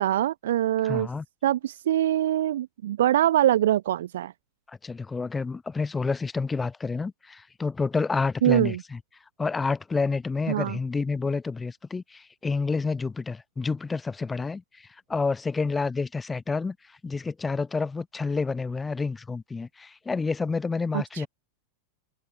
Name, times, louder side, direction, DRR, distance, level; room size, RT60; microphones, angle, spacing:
voice 1, 0.0-1.1 1.4-4.3 8.4-8.8 10.5-10.8 20.9-21.3, right 12 dB, 60° right, 0.8 m, -23 dB
voice 2, 0.8-1.3 4.8-9.0 9.4-21.3, left 4 dB, 15° left, 0.7 m, -29 dB
open air
figure-of-eight pair, 90°, 0 cm